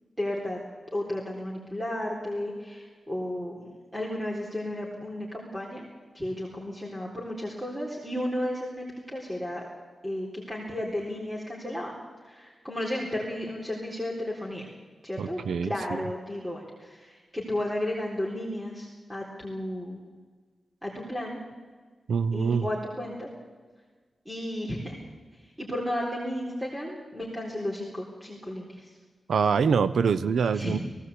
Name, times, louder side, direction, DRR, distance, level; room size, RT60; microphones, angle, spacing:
voice 1, 0.2-0.6 0.9-5.9 6.1-9.7 10.0-11.9 12.2-14.7 15.0-20.0 20.8-21.4 22.3-23.3 24.3-25.0 25.6-28.9 30.5-30.8, left 1 dB, 5° right, -4 dB, 4.0 m, -33 dB
voice 2, 15.2-15.7 22.1-22.7 29.3-30.8, right 6 dB, 90° right, 15 dB, 0.7 m, -24 dB
18.5 x 17.0 x 8.5 m, 1.4 s
wide cardioid pair, 90°, 0 cm